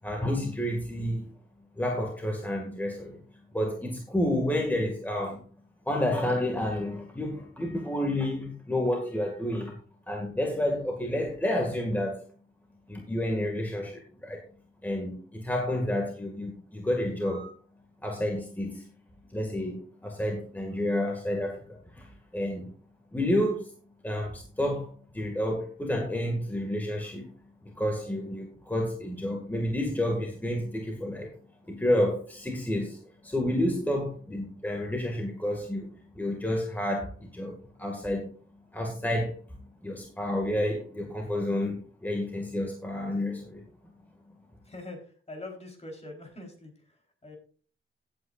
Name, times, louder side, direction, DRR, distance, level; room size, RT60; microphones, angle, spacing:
voice 1, 0.0-1.3 1.8-3.2 3.5-5.4 5.9-9.7 10.1-12.2 12.9-14.4 14.8-17.5 18.0-18.8 19.3-22.7 23.1-23.7 24.0-27.3 27.7-31.3 31.7-35.9 36.2-37.5 37.8-38.3 38.7-39.3 39.8-43.7, left 1 dB, 10° left, 1 dB, 2.0 m, -30 dB
voice 2, 44.6-47.4, left 2 dB, 30° left, 2 dB, 3.9 m, -44 dB
17.0 x 8.8 x 2.5 m, 0.41 s
wide cardioid pair, 115°, 21 cm